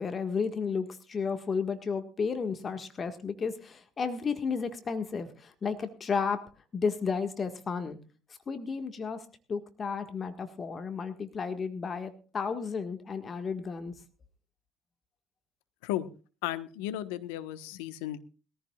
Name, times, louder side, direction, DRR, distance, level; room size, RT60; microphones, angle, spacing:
voice 1, 0.0-8.0 8.5-13.9, left 5 dB, 35° left, 7 dB, 1.7 m, -33 dB
voice 2, 16.4-18.2, left 13 dB, 75° left, 11 dB, 1.2 m, -34 dB
21.5 x 14.5 x 2.4 m, 0.35 s
hypercardioid pair, 60°, 0 cm